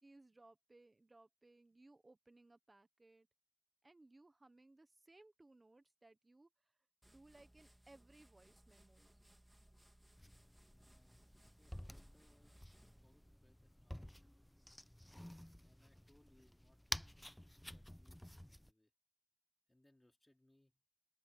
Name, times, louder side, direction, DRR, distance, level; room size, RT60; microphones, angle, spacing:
voice 1, 0.0-3.3 3.8-6.7 7.1-9.2, right 2 dB, 80° right, 1.2 m, -65 dB
sound 1, 7.0-13.5, right 1 dB, 20° right, 3.3 m, -67 dB
sound 2, 10.2-18.7, equal, 15° left, 0.6 m, -51 dB
voice 2, 10.8-14.6 15.6-18.9 19.7-20.8, left 1 dB, 35° left, 3.2 m, -74 dB
open air
wide cardioid pair, 45°, 0 cm